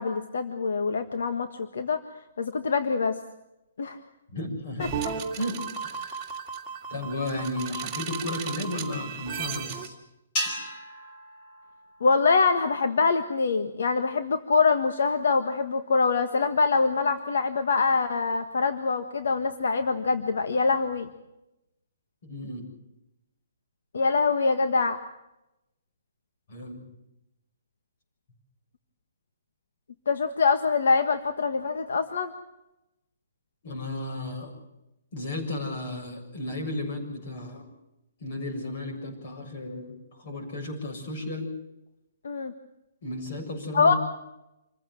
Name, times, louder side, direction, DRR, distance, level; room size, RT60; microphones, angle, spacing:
voice 1, 0.0-2.0 2.4-3.2 3.8-4.0 12.0-21.1 23.9-25.0 30.1-32.3 42.2-42.5 43.7-43.9, left 4 dB, 75° left, 8 dB, 1.6 m, -24 dB
voice 2, 4.3-5.0 5.4-6.4 6.9-9.9 10.5-10.6 22.2-22.7 26.5-26.9 33.6-34.5 35.1-37.7 38.2-41.5 43.0-44.0, left 1 dB, 40° left, 4 dB, 7.2 m, -34 dB
sound 1, 4.8-9.9, right 6 dB, 10° right, 2.2 m, -35 dB
sound 2, 10.4-12.8, equal, 20° left, 4.4 m, -35 dB
27.0 x 15.5 x 7.7 m, 0.90 s
hypercardioid pair, 170°, 0 cm